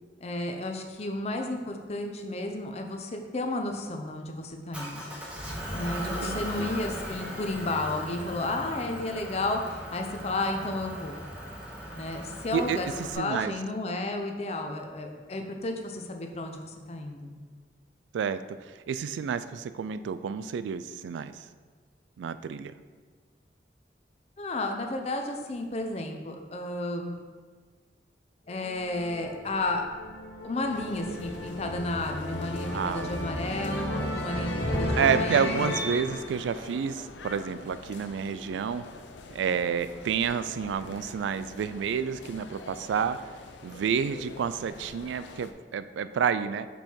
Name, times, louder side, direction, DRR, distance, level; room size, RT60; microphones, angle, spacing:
voice 1, 0.2-5.0 5.7-11.2 12.0-12.9 13.2-17.4 24.4-27.2 28.5-29.9 30.4-35.8, left 2 dB, 35° left, 4 dB, 0.6 m, -32 dB
Motor vehicle (road) / Engine, 4.7-13.1, equal, 5° right, 1.0 m, -38 dB
voice 2, 6.0-6.7 12.5-12.8 13.2-13.5 18.1-18.4 18.9-21.3 22.2-22.7 32.7-33.1 35.0-38.8 39.3-43.2 43.6-46.7, right 7 dB, 80° right, 12 dB, 0.3 m, -29 dB
sound 1, 28.5-37.5, left 1 dB, 60° left, 1.2 m, -34 dB
sound 2, 30.7-45.5, left 3 dB, 80° left, 0.5 m, -45 dB
5.3 x 4.4 x 4.5 m, 1.5 s
head